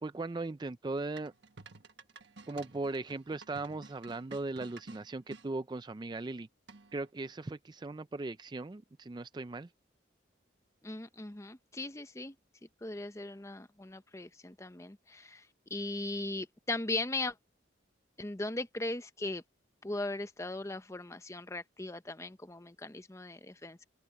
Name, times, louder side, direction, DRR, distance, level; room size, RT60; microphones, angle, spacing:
voice 1, 0.0-1.3 2.5-6.5 6.9-9.7, right 2 dB, 25° right, 0.4 m, -38 dB
sound 1, 1.2-5.5 6.7-7.1, right 3 dB, 70° right, 1.4 m, -52 dB
voice 2, 10.8-12.3 12.8-17.3 18.2-19.4 19.8-23.8, left 2 dB, 15° left, 0.8 m, -38 dB
open air
head